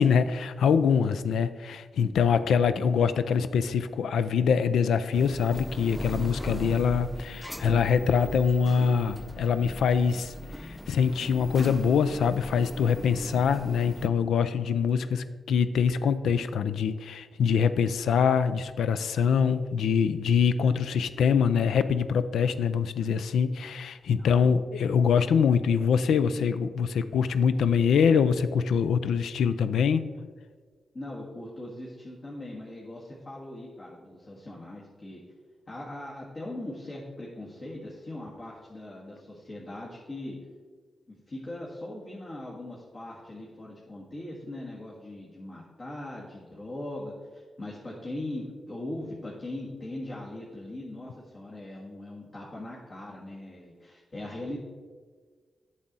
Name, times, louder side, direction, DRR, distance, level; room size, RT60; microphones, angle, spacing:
voice 1, 0.0-30.1, left 6 dB, 75° left, 12 dB, 0.3 m, -24 dB
sound 1, 5.1-14.1, equal, 5° left, 0.5 m, -39 dB
voice 2, 24.2-24.6 30.9-35.2 35.7-40.3 41.1-54.6, left 1 dB, 45° left, -5 dB, 1.7 m, -40 dB
8.4 x 6.2 x 4.0 m, 1.5 s
supercardioid pair, 45°, 0 cm